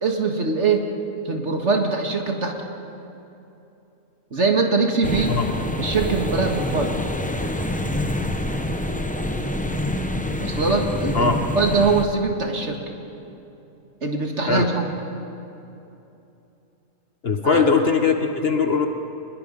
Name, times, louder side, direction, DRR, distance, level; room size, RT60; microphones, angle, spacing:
voice 1, 0.0-0.8 1.3-2.5 4.3-5.3 5.8-7.0 10.4-12.8 14.0-14.9 17.4-17.6, right 4 dB, 50° right, 3 dB, 2.0 m, -22 dB
sound 1, 5.0-12.1, left 1 dB, 5° left, 0.7 m, -26 dB
voice 2, 17.2-18.9, left 5 dB, 45° left, 5 dB, 1.4 m, -20 dB
25.0 x 21.0 x 5.4 m, 2.8 s
omnidirectional pair, 1.5 m